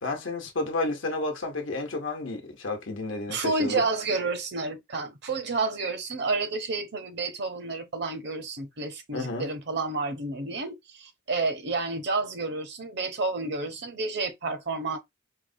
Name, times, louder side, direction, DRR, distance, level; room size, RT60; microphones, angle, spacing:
voice 1, 0.0-3.8 9.1-9.5, left 2 dB, 90° left, 0.9 m, -31 dB
voice 2, 3.3-15.0, right 3 dB, 65° right, 0.8 m, -30 dB
4.6 x 2.1 x 2.6 m
head